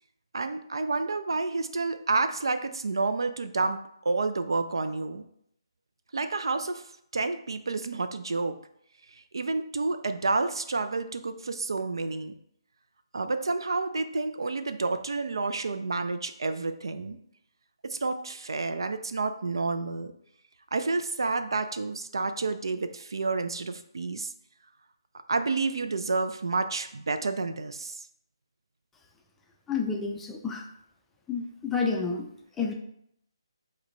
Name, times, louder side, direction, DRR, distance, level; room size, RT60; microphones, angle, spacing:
voice 1, 0.3-5.2 6.1-6.8 7.1-8.6 9.3-12.3 13.1-17.2 17.8-20.1 20.7-24.3 25.3-28.0, right 3 dB, 65° right, 9 dB, 0.3 m, -29 dB
voice 2, 29.7-30.6 31.3-32.3 32.6-32.7, left 5 dB, 5° left, 1 dB, 0.4 m, -29 dB
5.1 x 2.1 x 3.8 m, 0.72 s
figure-of-eight pair, 145°, 3 cm